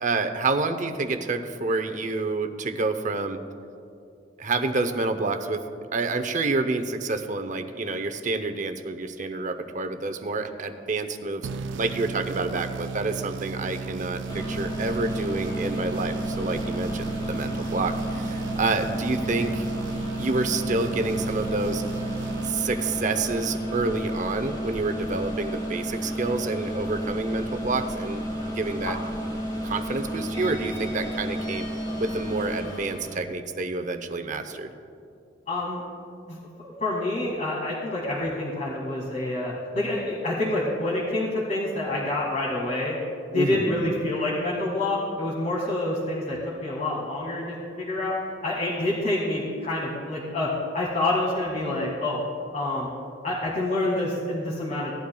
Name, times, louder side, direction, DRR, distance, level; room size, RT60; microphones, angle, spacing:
voice 1, 0.0-3.4 4.4-5.6 5.9-11.5 11.8-19.6 20.2-21.8 22.4-28.2 28.5-29.0 29.6-31.7 32.0-34.7 43.3-43.7, right 3 dB, 45° right, 8 dB, 0.7 m, -28 dB
sound 1, 11.4-23.1, right 5 dB, 80° right, 0.4 m, -35 dB
sound 2, 14.3-33.2, equal, 25° left, 2.3 m, -32 dB
voice 2, 35.5-35.8 36.3-43.0 43.3-48.1 48.4-52.2 52.5-52.9 53.2-55.0, left 2 dB, 45° left, -6 dB, 1.8 m, -27 dB
17.5 x 11.5 x 2.3 m, 2.5 s
head